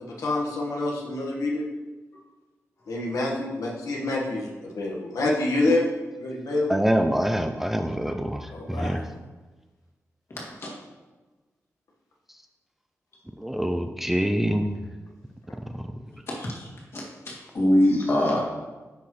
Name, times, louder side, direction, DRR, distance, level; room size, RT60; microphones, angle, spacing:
voice 1, 0.0-1.6 2.9-5.8 6.2-6.8 8.5-9.0, left 2 dB, 90° left, -2 dB, 1.4 m, -27 dB
voice 2, 6.7-9.1 13.4-14.8, equal, 5° right, 6 dB, 0.4 m, -25 dB
voice 3, 10.3-10.7 16.3-18.4, left 1 dB, 50° left, -3 dB, 2.2 m, -24 dB
9.8 x 5.9 x 3.2 m, 1.2 s
wide cardioid pair, 155°, 6 cm